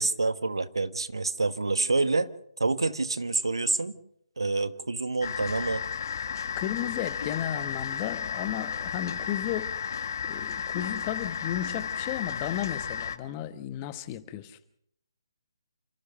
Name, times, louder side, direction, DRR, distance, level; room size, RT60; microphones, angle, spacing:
voice 1, 0.0-2.3 2.6-3.9 4.4-5.8, right 3 dB, 85° right, 1.3 m, -27 dB
sound 1, 5.2-13.2, left 7 dB, 50° left, 1.4 m, -33 dB
voice 2, 6.6-9.7 10.2-14.8, left 12 dB, 25° left, 1.2 m, -34 dB
29.0 x 15.0 x 6.6 m
figure-of-eight pair, 150°, 2 cm